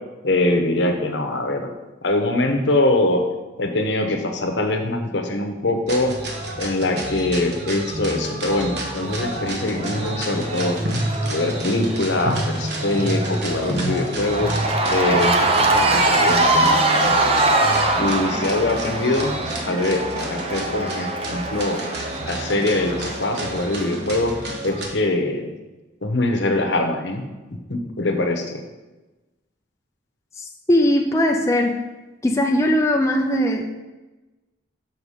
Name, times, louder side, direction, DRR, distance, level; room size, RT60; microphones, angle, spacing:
voice 1, 0.2-1.7 2.0-3.2 3.6-6.2 6.6-10.8 11.3-14.5 14.9-17.2 18.0-19.3 19.7-21.8 22.3-24.3 24.6-25.5 26.0-27.2 27.7-28.6, left 2 dB, 70° left, 5 dB, 1.0 m, -23 dB
sound 1, 5.9-24.9, right 1 dB, 60° right, 1.2 m, -29 dB
Cheering / Crowd, 8.7-24.0, right 2 dB, 30° right, 0.7 m, -24 dB
voice 2, 30.4-31.8 32.2-33.6, left 1 dB, 15° left, 2 dB, 0.5 m, -19 dB
6.4 x 5.5 x 4.9 m, 1.1 s
head